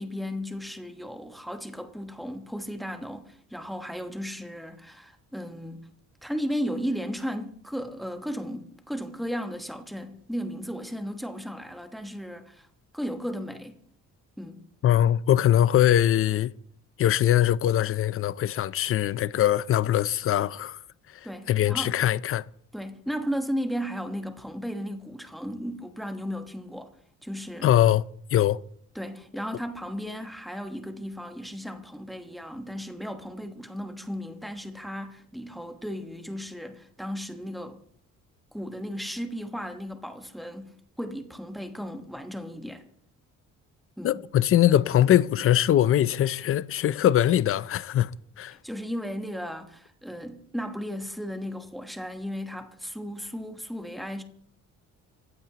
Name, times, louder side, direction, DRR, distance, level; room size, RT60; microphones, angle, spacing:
voice 1, 0.0-5.8 6.2-12.7 12.9-13.8 14.4-14.6 21.2-21.9 22.7-27.0 27.2-27.7 28.9-37.8 38.5-42.9 44.0-44.2 48.5-54.2, equal, ahead, 1.2 m, -35 dB
voice 2, 14.8-16.5 17.0-20.8 21.5-22.4 27.6-28.0 28.3-28.6 44.0-48.1 48.4-48.6, left 12 dB, 45° left, 0.5 m, -22 dB
26.5 x 15.0 x 2.9 m
cardioid pair, 160°, 30 cm